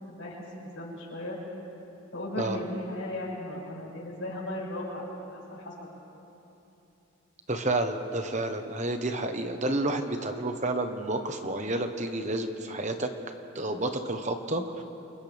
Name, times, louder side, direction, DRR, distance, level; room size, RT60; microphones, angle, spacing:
voice 1, 0.1-1.4 2.1-5.9, left 1 dB, 70° left, -5 dB, 7.0 m, -36 dB
voice 2, 7.5-13.1 13.5-14.8, right 2 dB, 35° right, 6 dB, 1.2 m, -30 dB
29.5 x 28.0 x 3.6 m, 3.0 s
head